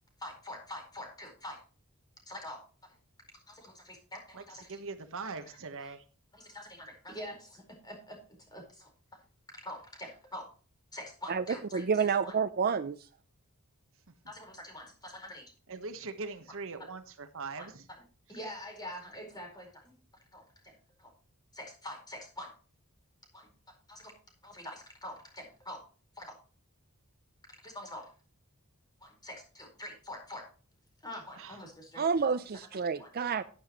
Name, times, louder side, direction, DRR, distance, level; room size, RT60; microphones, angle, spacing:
voice 1, 0.2-1.6 2.3-2.6 3.5-4.8 5.3-5.4 5.8-5.9 6.3-8.2 8.5-8.9 9.5-10.5 10.9-12.3 14.3-15.5 17.6-17.7 18.3-19.9 20.3-21.1 21.5-22.5 23.3-23.5 23.9-24.1 24.4-25.8 26.2-26.4 27.6-28.1 29.0-30.4 31.0-32.1 33.0-33.1, left 1 dB, 20° left, 4.5 m, -45 dB
voice 2, 4.7-6.0 15.7-17.8 31.4-31.6, right 4 dB, 65° right, 1.3 m, -41 dB
voice 3, 11.7-13.0 32.0-33.4, right 6 dB, 45° right, 0.5 m, -29 dB
11.0 x 11.0 x 3.0 m
head